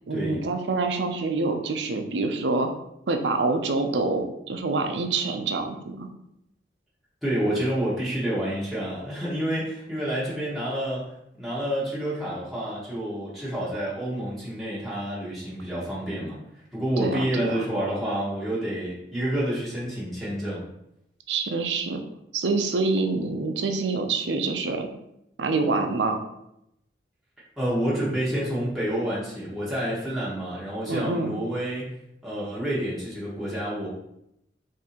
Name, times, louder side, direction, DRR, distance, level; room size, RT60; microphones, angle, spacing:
voice 1, 0.1-2.7 3.1-6.1 17.0-17.6 21.3-22.0 22.3-24.9 25.4-26.2 30.9-31.3, right 3 dB, 80° right, 5 dB, 0.5 m, -26 dB
voice 2, 7.2-11.1 11.4-16.4 16.7-20.7 27.6-31.9 32.2-33.9, right 1 dB, ahead, -9 dB, 1.1 m, -28 dB
3.7 x 2.7 x 4.2 m, 0.80 s
head